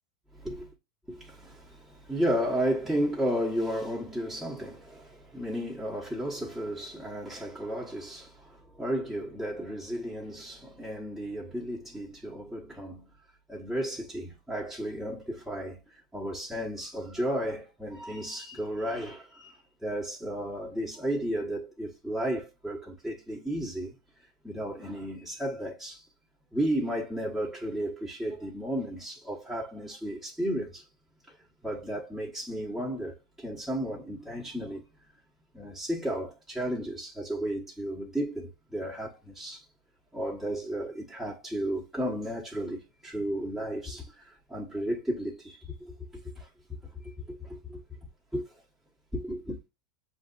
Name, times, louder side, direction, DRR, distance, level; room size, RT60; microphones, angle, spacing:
voice 1, 0.3-0.7 1.1-13.1 13.5-23.9 24.4-26.1 26.5-30.9 31.3-34.8 35.5-39.7 40.1-46.5 46.8-47.8 48.3-48.6 49.1-49.6, equal, ahead, 1.3 m, -33 dB
7.6 x 2.7 x 2.5 m
hypercardioid pair, 110°, 4 cm